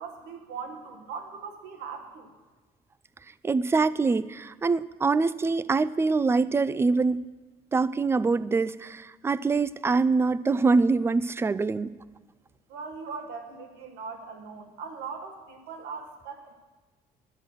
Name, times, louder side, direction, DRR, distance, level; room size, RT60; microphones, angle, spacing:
voice 1, 0.0-2.3 12.7-16.5, right 5 dB, 90° right, 5 dB, 1.3 m, -40 dB
voice 2, 3.4-7.2 7.7-11.9, right 4 dB, 15° right, 17 dB, 0.3 m, -24 dB
12.0 x 6.3 x 7.6 m, 1.3 s
cardioid pair, 110°, 17 cm